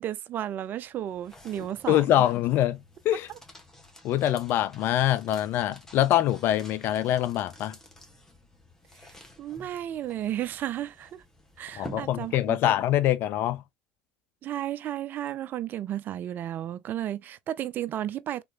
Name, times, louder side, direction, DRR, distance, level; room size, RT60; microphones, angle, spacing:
voice 1, 0.0-2.0 9.0-11.2 11.6-12.7 14.4-18.4, right 11 dB, 45° right, 0.5 m, -33 dB
sound 1, 0.6-12.8, left 1 dB, 10° left, 1.5 m, -50 dB
voice 2, 1.6-2.8 3.0-3.3 4.0-7.8 11.8-13.6, left 12 dB, 55° left, 0.6 m, -24 dB
3.7 x 3.1 x 2.5 m
hypercardioid pair, 75°, 5 cm